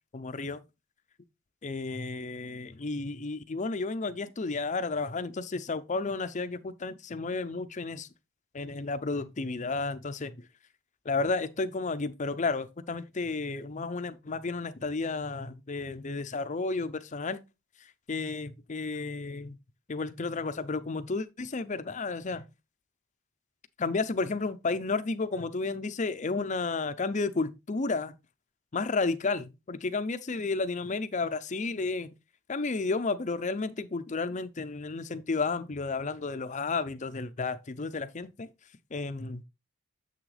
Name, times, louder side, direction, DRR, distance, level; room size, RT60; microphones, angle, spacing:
voice 1, 0.1-0.6 1.6-8.1 8.5-10.3 11.1-17.4 18.1-19.6 19.9-22.4 23.8-28.1 28.7-32.1 32.5-38.5 38.9-39.4, left 3 dB, 35° left, 0.5 m, -32 dB
7.3 x 6.1 x 3.3 m
head